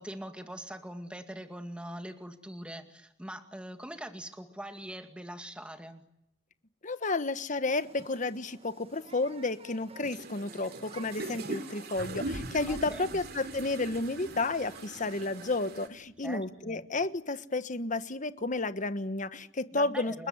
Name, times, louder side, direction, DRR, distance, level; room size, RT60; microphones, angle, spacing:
voice 1, 0.0-6.0 12.7-13.2 16.2-16.8 19.7-20.3, right 1 dB, 5° right, 6 dB, 2.1 m, -42 dB
voice 2, 6.8-20.3, left 3 dB, 40° left, 12 dB, 1.3 m, -32 dB
Human group actions, 7.7-15.5, right 3 dB, 30° right, 1.8 m, -53 dB
sound 1, 10.0-15.9, right 3 dB, 55° right, 3.3 m, -44 dB
sound 2, 11.9-16.8, right 1 dB, 80° right, 3.3 m, -42 dB
30.0 x 20.5 x 9.7 m, 0.80 s
head